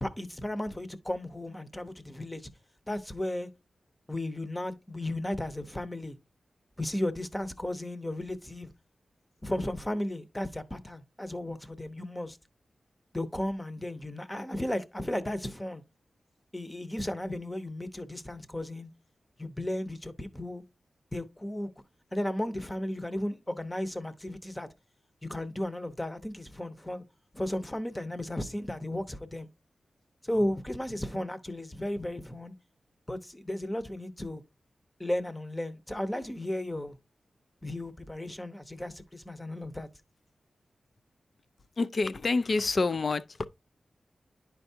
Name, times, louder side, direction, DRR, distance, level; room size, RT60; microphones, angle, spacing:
voice 1, 0.0-2.4 2.9-3.5 4.1-6.2 6.8-8.7 9.4-12.4 13.1-15.8 16.5-18.9 19.4-20.6 21.1-21.7 22.1-24.7 25.2-27.0 27.3-29.5 30.2-32.5 33.1-34.4 35.0-37.0 37.6-39.9, left 1 dB, 15° left, 0.8 m, -34 dB
voice 2, 41.8-43.5, left 3 dB, 50° left, 0.4 m, -27 dB
10.5 x 4.5 x 2.7 m
wide cardioid pair, 105°, 0 cm